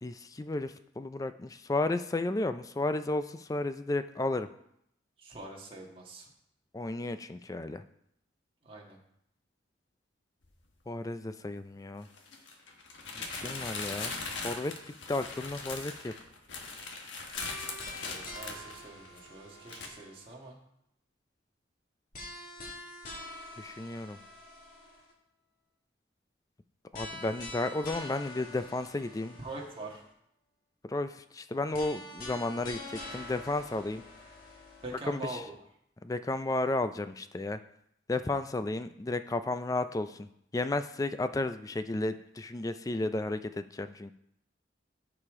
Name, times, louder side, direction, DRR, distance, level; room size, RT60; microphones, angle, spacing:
voice 1, 0.0-4.5 6.7-7.8 10.9-12.1 13.2-14.2 14.4-14.7 15.1-16.1 23.6-24.2 26.9-29.4 30.8-34.0 35.1-35.4 36.0-37.6 38.1-40.3 40.5-44.1, left 2 dB, 20° left, 11 dB, 0.3 m, -33 dB
voice 2, 5.2-6.3 8.6-9.0 17.9-20.6 29.4-30.0 34.8-35.5, right 2 dB, 30° right, -2 dB, 1.6 m, -44 dB
sound 1, 10.4-10.5 12.1-19.3 19.7-19.9, left 4 dB, 80° left, 1.3 m, -40 dB
sound 2, 17.4-20.5 22.1-25.1 26.9-30.1 31.7-35.2, left 2 dB, 45° left, 2.3 m, -45 dB
14.5 x 5.0 x 3.7 m, 0.75 s
head